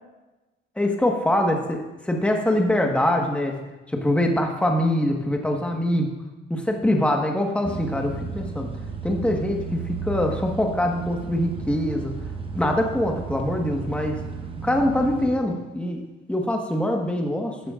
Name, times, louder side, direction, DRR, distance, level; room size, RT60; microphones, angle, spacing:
voice 1, 0.8-3.5 4.0-6.1 6.5-8.7 9.0-12.1 12.5-14.2 14.6-16.0 16.3-17.5, left 1 dB, 5° left, 2 dB, 1.4 m, -23 dB
sound 1, 7.6-15.3, right 5 dB, 25° right, 1.1 m, -34 dB
13.5 x 9.5 x 2.5 m, 1.1 s
cardioid pair, 90°, 20 cm